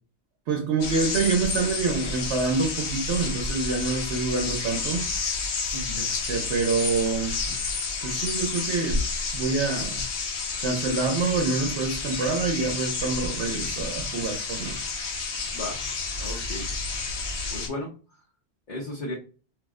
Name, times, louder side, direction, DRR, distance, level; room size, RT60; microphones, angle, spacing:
voice 1, 0.5-5.1 6.0-7.5 8.0-9.0 9.3-10.1 10.6-14.8, right 4 dB, 80° right, 0.9 m, -26 dB
sound 1, 0.8-17.7, left 4 dB, 75° left, 1.0 m, -30 dB
voice 2, 5.7-6.1 15.5-15.9 16.2-16.7 17.5-17.9 18.7-19.1, left 2 dB, 45° left, 0.8 m, -34 dB
2.5 x 2.0 x 3.5 m
omnidirectional pair, 1.1 m